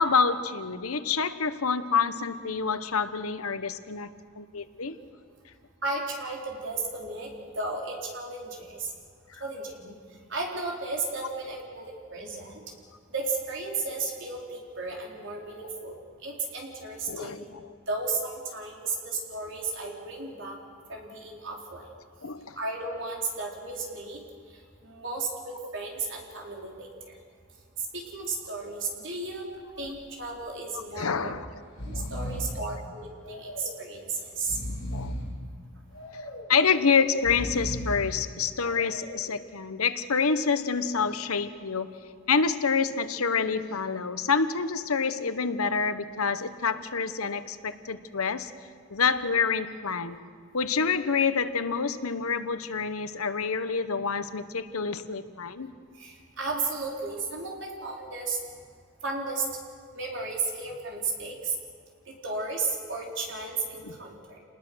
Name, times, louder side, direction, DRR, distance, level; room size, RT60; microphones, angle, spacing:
voice 1, 0.0-4.1 4.4-5.0 15.6-16.0 17.1-17.4 22.2-22.6 30.9-31.5 31.9-32.1 32.6-32.7 34.9-35.2 36.5-41.9 42.3-48.5 48.9-50.2 50.5-55.7 63.8-63.9, left 5 dB, 85° left, 11 dB, 1.1 m, -27 dB
voice 2, 5.8-8.9 9.4-9.9 10.3-11.9 12.1-12.6 13.1-15.9 16.2-17.4 17.9-20.6 20.9-21.8 22.6-24.2 24.8-27.1 27.9-29.5 29.8-31.3 31.8-34.6 56.0-58.4 59.0-59.4 59.9-61.5 62.2-64.4, right 3 dB, 55° right, -1 dB, 4.3 m, -34 dB
Breathing, 29.5-29.9 30.2-30.3 31.2-31.4 31.6-32.6 33.2-33.9 34.3-35.3 35.9-36.6 37.1-38.1 38.7-39.3, equal, 70° left, 4.7 m, -36 dB
28.0 x 20.0 x 6.4 m, 2.1 s
head